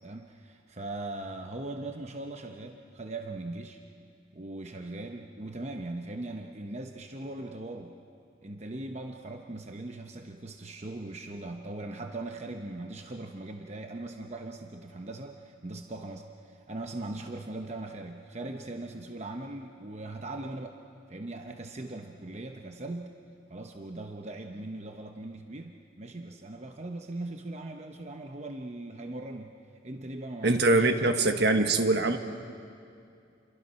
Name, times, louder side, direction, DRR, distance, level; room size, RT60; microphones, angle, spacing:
voice 1, 0.0-3.8 4.3-8.0 8.4-20.8 21.1-23.2 23.5-29.6 29.8-30.9 31.2-31.5, right 2 dB, 35° right, 4 dB, 0.9 m, -40 dB
voice 2, 30.4-32.2, right 2 dB, 60° right, 6 dB, 1.4 m, -23 dB
28.5 x 23.5 x 5.8 m, 2.5 s
head